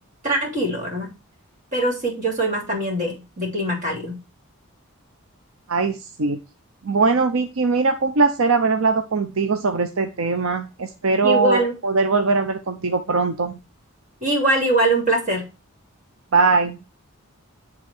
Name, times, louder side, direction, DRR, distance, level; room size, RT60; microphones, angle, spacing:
voice 1, 0.2-1.1 1.7-4.2 11.2-11.7 14.2-15.5, right 1 dB, 35° right, 0 dB, 3.0 m, -22 dB
voice 2, 5.7-6.4 6.8-13.6 16.3-16.8, right 4 dB, 70° right, 7 dB, 0.7 m, -21 dB
9.4 x 3.7 x 4.4 m, 0.29 s
head